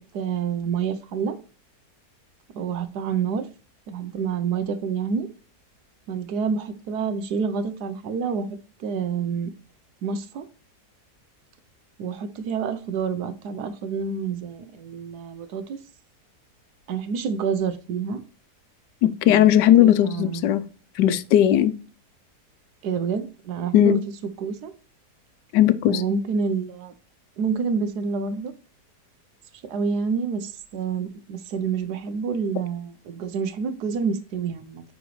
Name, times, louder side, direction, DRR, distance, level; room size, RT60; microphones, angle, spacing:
voice 1, 0.1-1.4 2.5-3.4 3.9-5.3 6.1-9.5 10.0-10.5 12.0-15.8 16.9-18.2 19.2-19.5 19.8-20.5 22.8-24.0 24.4-24.7 25.9-26.9 27.4-28.5 29.7-34.8, right 6 dB, 75° right, 1.3 m, -28 dB
voice 2, 19.0-20.7 21.0-21.7 23.7-24.0 25.5-26.0, left 11 dB, 85° left, 1.2 m, -17 dB
9.7 x 4.0 x 3.1 m
omnidirectional pair, 1.8 m